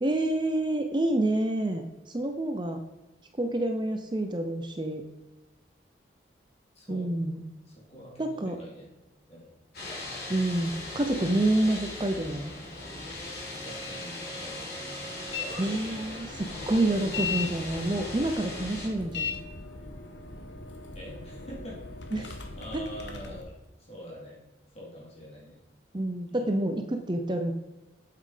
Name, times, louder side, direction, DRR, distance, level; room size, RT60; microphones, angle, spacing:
voice 1, 0.0-2.8 3.4-5.0 6.9-7.4 8.2-8.6 10.3-12.5 15.6-19.4 22.1-22.3 25.9-27.5, right 1 dB, 25° right, 6 dB, 0.6 m, -28 dB
voice 2, 6.8-7.1 7.7-8.9 9.3-9.5 13.6-14.7 15.3-15.4 20.9-21.8 22.2-24.4 24.7-25.6 26.3-26.5, equal, 35° left, -4 dB, 3.5 m, -45 dB
sound 1, 9.7-18.9, left 1 dB, 55° left, 3.8 m, -39 dB
sound 2, 15.3-15.5 15.9-23.4, left 4 dB, 75° left, 1.4 m, -38 dB
8.5 x 7.6 x 5.1 m, 1.1 s
head